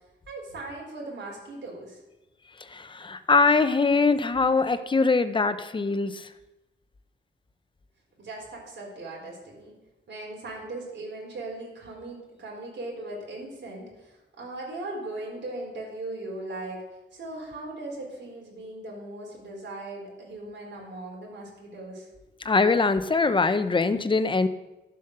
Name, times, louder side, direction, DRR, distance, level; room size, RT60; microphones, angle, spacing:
voice 1, 0.3-2.0 8.2-9.7 10.1-16.8 17.1-22.1, right 2 dB, 65° right, -2 dB, 4.4 m, -38 dB
voice 2, 2.6-6.3 22.4-24.5, left 4 dB, 25° left, 11 dB, 0.6 m, -23 dB
12.0 x 7.7 x 6.6 m, 1.0 s
wide cardioid pair, 145°, 20 cm